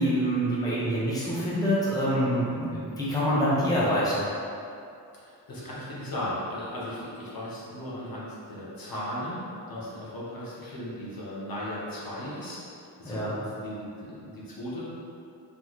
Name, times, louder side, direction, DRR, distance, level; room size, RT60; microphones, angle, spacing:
voice 1, 0.0-4.1 13.0-13.4, equal, 10° left, -8 dB, 0.9 m, -26 dB
voice 2, 5.2-15.0, left 1 dB, 60° left, -7 dB, 1.2 m, -37 dB
4.0 x 3.6 x 3.0 m, 2.6 s
wide cardioid pair, 110°, 40 cm